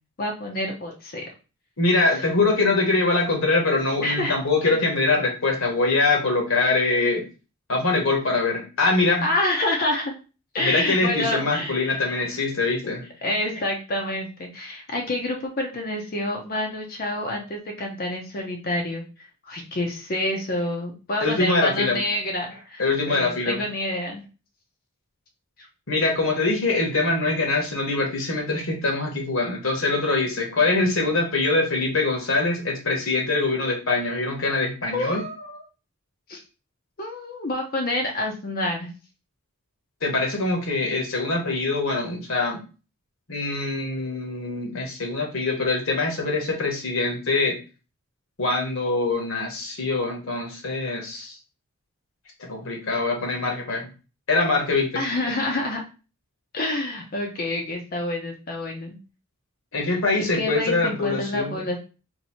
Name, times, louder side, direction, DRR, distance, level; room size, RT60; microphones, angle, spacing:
voice 1, 0.2-1.2 2.1-2.3 4.0-4.4 4.7-4.8 9.2-10.1 10.5-11.9 12.8-12.9 13.2-19.0 19.4-24.2 34.9-35.6 36.3-36.4 37.0-38.9 54.9-55.8 56.5-59.0 59.9-61.8, left 1 dB, 40° left, 1 dB, 0.6 m, -28 dB
voice 2, 1.8-7.3 7.7-9.3 10.6-13.1 21.2-22.0 22.8-23.6 25.9-35.2 40.0-42.6 43.3-47.6 48.4-51.4 52.4-53.9 54.3-54.9 59.7-61.6, left 3 dB, 60° left, 1 dB, 1.1 m, -23 dB
2.7 x 2.6 x 4.2 m, 0.33 s
head